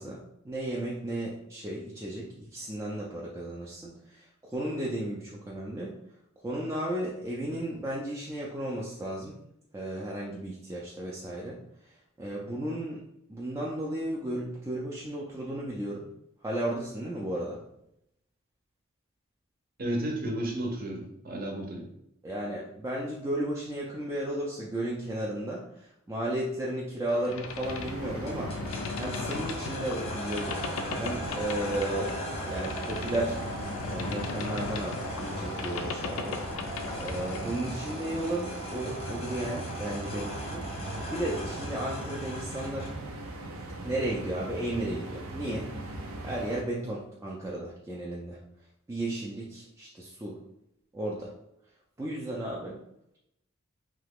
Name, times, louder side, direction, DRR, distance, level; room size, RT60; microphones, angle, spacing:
voice 1, 0.0-6.0 6.4-9.4 9.7-11.6 12.2-13.0 13.3-16.1 16.4-17.6 22.2-25.6 26.1-28.5 29.0-30.7 31.0-32.2 32.5-33.4 33.9-36.5 37.0-40.7 41.1-42.9 43.8-45.7 46.2-48.4 48.9-50.4 50.9-51.3 52.0-52.8, right 1 dB, 15° right, -5 dB, 0.4 m, -34 dB
voice 2, 19.8-21.9, right 1 dB, 45° right, 1 dB, 0.7 m, -32 dB
Boat Water vehicle, 27.1-37.6, left 4 dB, 75° left, 0.4 m, -38 dB
sound 1, 27.6-46.6, right 2 dB, 80° right, 0.5 m, -40 dB
sound 2, 28.3-43.1, equal, 30° left, 0.6 m, -39 dB
2.9 x 2.3 x 3.4 m, 0.77 s
head